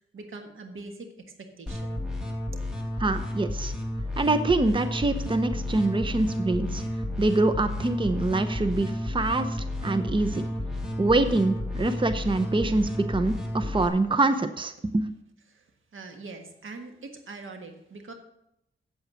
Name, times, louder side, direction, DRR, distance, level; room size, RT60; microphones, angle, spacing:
voice 1, 0.0-2.0 15.5-15.7 15.9-18.1, right 3 dB, 80° right, 5 dB, 1.5 m, -43 dB
sound 1, 1.7-13.9, left 1 dB, 5° right, 2.5 m, -32 dB
voice 2, 3.0-3.7 4.2-6.8 7.2-10.4 11.0-15.1, right 2 dB, 25° right, 9 dB, 0.7 m, -25 dB
8.2 x 8.0 x 6.3 m, 0.81 s
cardioid pair, 70°, 21 cm